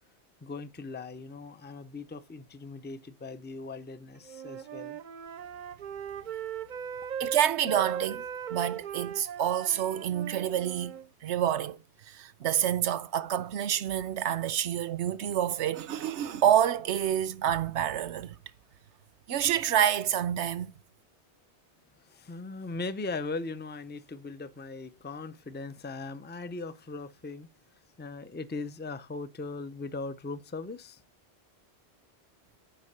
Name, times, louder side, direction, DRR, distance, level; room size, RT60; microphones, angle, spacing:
voice 1, 0.4-5.0 22.0-27.5 28.0-31.0, left 3 dB, 15° left, 0.5 m, -39 dB
Wind instrument woodwind instrument, 4.2-11.1, right 8 dB, 50° right, 0.7 m, -38 dB
voice 2, 7.2-10.9 11.2-11.8 12.1-18.4 19.3-20.7, right 10 dB, 85° right, 1.0 m, -28 dB
11.5 x 5.3 x 6.6 m
omnidirectional pair, 1.1 m